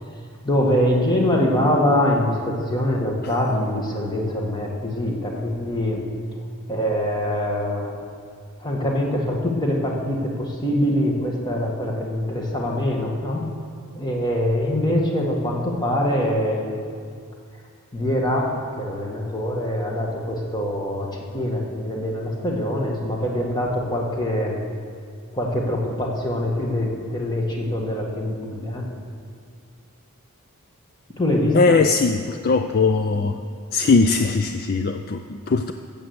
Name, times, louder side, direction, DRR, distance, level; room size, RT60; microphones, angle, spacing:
voice 1, 0.4-6.0 6.7-8.0 8.6-13.4 13.9-16.8 17.9-24.6 25.3-28.9 31.2-31.7, left 1 dB, 20° left, -1 dB, 1.7 m, -24 dB
voice 2, 31.5-33.4 33.7-35.7, left 4 dB, 45° left, 7 dB, 0.4 m, -20 dB
13.5 x 7.1 x 7.9 m, 2.2 s
head